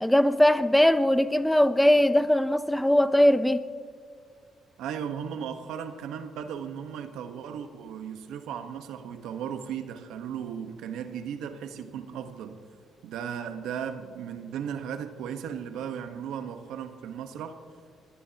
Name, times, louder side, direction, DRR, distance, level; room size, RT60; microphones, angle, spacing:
voice 1, 0.0-3.6, left 1 dB, 5° left, 0.7 m, -20 dB
voice 2, 4.8-12.6 13.0-17.6, right 8 dB, 80° right, 1.2 m, -36 dB
22.5 x 18.5 x 2.9 m
cardioid pair, 80°, 0 cm